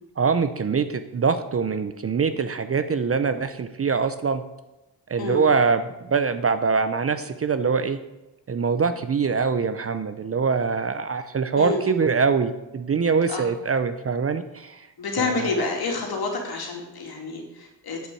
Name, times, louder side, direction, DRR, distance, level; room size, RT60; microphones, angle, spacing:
voice 1, 0.2-4.4 5.1-8.0 8.5-14.9 15.2-15.7, right 5 dB, 35° right, 11 dB, 0.6 m, -24 dB
voice 2, 11.5-11.9 13.3-13.5 15.0-18.1, left 3 dB, 55° left, 2 dB, 2.8 m, -28 dB
8.2 x 7.2 x 8.5 m, 1.0 s
wide cardioid pair, 160°, 43 cm